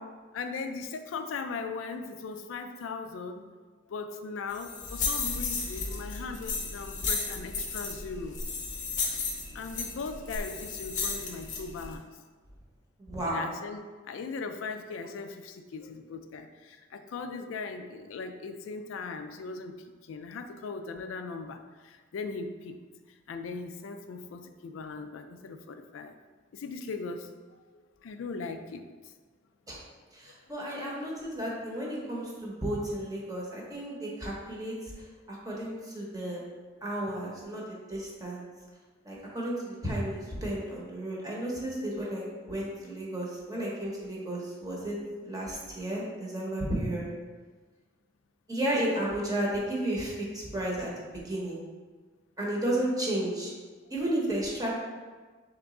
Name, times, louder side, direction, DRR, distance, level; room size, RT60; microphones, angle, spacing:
voice 1, 0.3-3.4 3.9-8.4 9.5-12.2 13.2-19.8 20.0-22.8 23.3-26.1 26.5-29.1 30.3-30.4, left 4 dB, 90° left, 7 dB, 0.3 m, -39 dB
sound 1, 4.5-11.9, left 4 dB, 40° left, 0.6 m, -34 dB
voice 2, 13.0-13.5 29.7-29.8 30.1-34.8 35.3-36.4 36.8-37.6 37.9-38.5 39.0-47.1 48.5-51.6 52.4-53.5 53.9-54.7, right 1 dB, 20° right, -4 dB, 0.8 m, -33 dB
3.5 x 3.0 x 3.7 m, 1.4 s
head